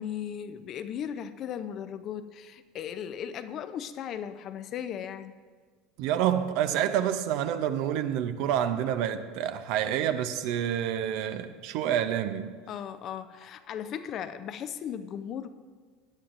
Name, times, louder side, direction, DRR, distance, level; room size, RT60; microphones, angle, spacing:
voice 1, 0.0-5.3 12.7-15.5, left 9 dB, 45° left, 0.6 m, -37 dB
voice 2, 6.0-12.5, right 10 dB, 60° right, 0.6 m, -28 dB
16.0 x 10.0 x 2.6 m
hypercardioid pair, 75°, 0 cm